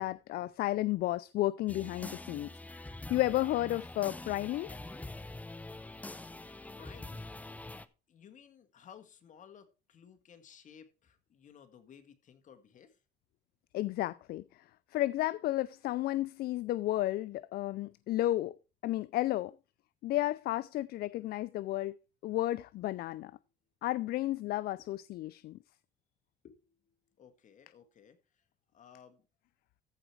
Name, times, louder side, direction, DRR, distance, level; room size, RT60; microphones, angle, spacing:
voice 1, 0.0-2.5 2.8-4.8 13.7-14.4 14.9-18.6 18.8-19.5 20.0-22.0 22.2-23.3 23.8-25.6, left 15 dB, 65° left, 0.4 m, -32 dB
sound 1, 1.7-7.9, left 2 dB, 10° left, 0.7 m, -45 dB
voice 2, 6.7-13.0 23.3-23.4 24.8-24.9 26.4-28.5 28.7-29.3, left 8 dB, 50° left, 1.9 m, -57 dB
14.5 x 5.0 x 4.6 m
cardioid pair, 110°, 17 cm